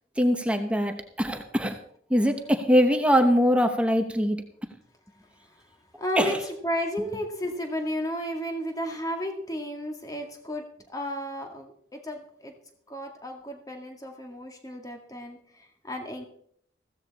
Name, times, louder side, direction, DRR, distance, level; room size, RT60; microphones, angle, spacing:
voice 1, 0.2-1.8 2.1-4.4 6.2-6.4, equal, 5° right, 5 dB, 1.0 m, -22 dB
voice 2, 6.0-10.6 10.9-12.5 12.9-16.2, equal, 20° left, 3 dB, 2.0 m, -33 dB
15.5 x 14.0 x 4.2 m, 0.64 s
head